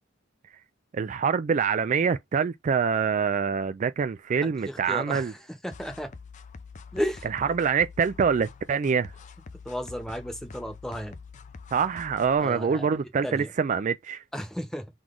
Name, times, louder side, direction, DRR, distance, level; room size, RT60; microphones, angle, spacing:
voice 1, 0.9-5.3 7.5-9.1 11.7-14.2, right 6 dB, 40° right, 0.3 m, -25 dB
voice 2, 4.4-6.1 6.9-7.3 9.6-11.2 12.4-12.9 13.2-13.5 14.3-15.0, equal, 5° left, 1.0 m, -34 dB
sound 1, 5.7-12.4, left 4 dB, 40° left, 0.5 m, -46 dB
3.9 x 3.1 x 3.7 m
head